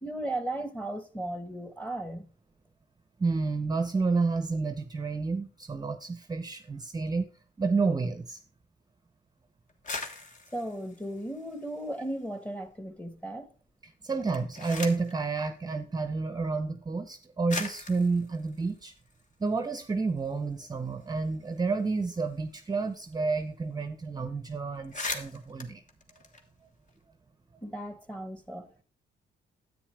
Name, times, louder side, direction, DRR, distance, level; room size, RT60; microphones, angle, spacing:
voice 1, 0.0-2.3 10.5-13.5 27.6-28.8, right 1 dB, 5° left, 1.3 m, -36 dB
voice 2, 3.2-7.3 7.6-8.4 13.8-18.9 19.4-25.8, right 4 dB, 20° right, 0.7 m, -30 dB
sound 1, 9.7-12.3 12.6-13.3 14.1-15.2 16.2-16.3 17.1-17.2 17.5-19.8 20.2-20.3 20.5-23.1 23.4-23.5 23.8-24.1 24.4-24.5 24.7-27.0, left 3 dB, 40° left, 1.5 m, -41 dB
10.0 x 8.5 x 3.3 m
cardioid pair, 90°, 20 cm